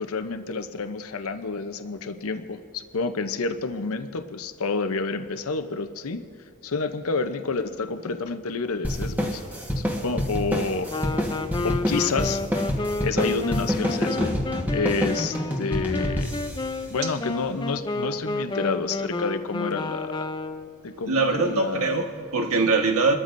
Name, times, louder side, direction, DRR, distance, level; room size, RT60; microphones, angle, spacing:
voice 1, 0.0-6.2 6.6-9.4 9.8-10.9 11.6-12.4 13.0-14.3 14.7-16.4 16.9-20.3 20.8-22.0, left 4 dB, 80° left, 0.7 m, -29 dB
sound 1, 8.8-17.7, equal, 10° right, 1.3 m, -28 dB
Wind instrument woodwind instrument, 10.9-20.8, left 2 dB, 20° left, 0.4 m, -31 dB
voice 2, 21.1-23.2, right 3 dB, 75° right, 1.4 m, -22 dB
28.5 x 13.5 x 2.6 m
head